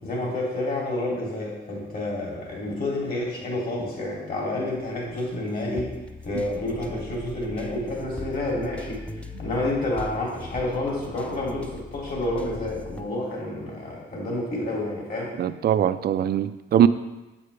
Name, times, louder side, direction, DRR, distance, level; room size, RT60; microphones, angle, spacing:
voice 1, 0.0-5.9 6.2-9.0 9.4-15.4, left 1 dB, 50° left, -4 dB, 2.8 m, -29 dB
sound 1, 4.7-13.0, left 2 dB, 5° left, 0.5 m, -41 dB
voice 2, 15.4-16.9, right 10 dB, 50° right, 12 dB, 0.4 m, -21 dB
8.3 x 7.4 x 3.3 m, 1.1 s
cardioid pair, 90°, 20 cm